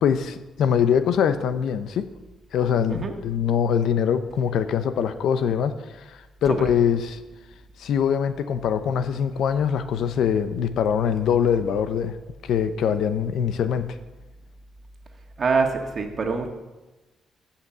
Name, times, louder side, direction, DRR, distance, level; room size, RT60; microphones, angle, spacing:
voice 1, 0.0-2.1 2.5-7.2 7.8-12.2 12.4-13.9, left 8 dB, 75° left, 11 dB, 0.8 m, -23 dB
voice 2, 15.4-16.5, right 4 dB, 45° right, 4 dB, 1.7 m, -24 dB
14.5 x 5.9 x 7.3 m, 1.1 s
cardioid pair, 100°, 0 cm